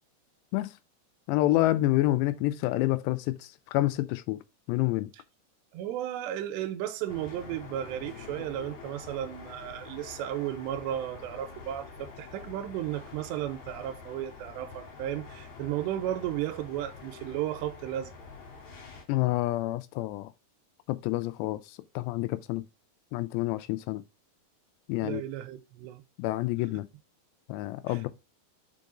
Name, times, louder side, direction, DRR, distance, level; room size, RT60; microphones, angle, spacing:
voice 1, 1.3-3.4 3.7-4.4 4.7-5.1 19.1-20.3 20.9-21.6 22.0-22.7 23.1-24.0 24.9-25.2 26.2-26.9 27.5-28.1, left 17 dB, 90° left, 2.8 m, -28 dB
voice 2, 5.7-18.1 25.0-26.0 27.9-28.0, right 12 dB, 90° right, 2.9 m, -34 dB
sound 1, 7.1-19.0, left 5 dB, 55° left, 2.5 m, -46 dB
5.3 x 5.3 x 3.7 m
omnidirectional pair, 4.9 m